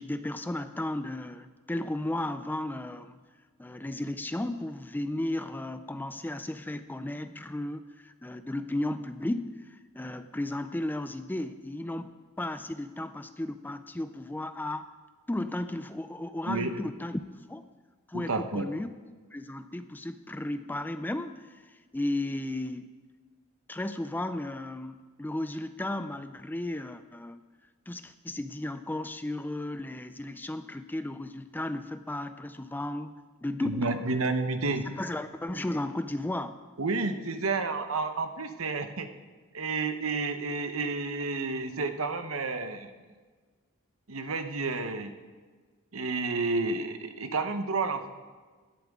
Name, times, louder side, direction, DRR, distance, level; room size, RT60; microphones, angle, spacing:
voice 1, 0.0-3.2 3.6-12.1 12.4-14.9 15.3-17.2 17.5-17.7 18.1-18.9 19.3-22.9 23.7-27.4 27.9-33.1 33.4-34.0 34.9-36.6, left 1 dB, 10° left, 11 dB, 0.4 m, -34 dB
voice 2, 18.1-18.7 33.6-34.8 36.8-39.1 39.5-42.9 44.1-45.1 45.9-48.1, right 3 dB, 65° right, 8 dB, 1.0 m, -30 dB
17.0 x 12.0 x 3.7 m, 1.4 s
head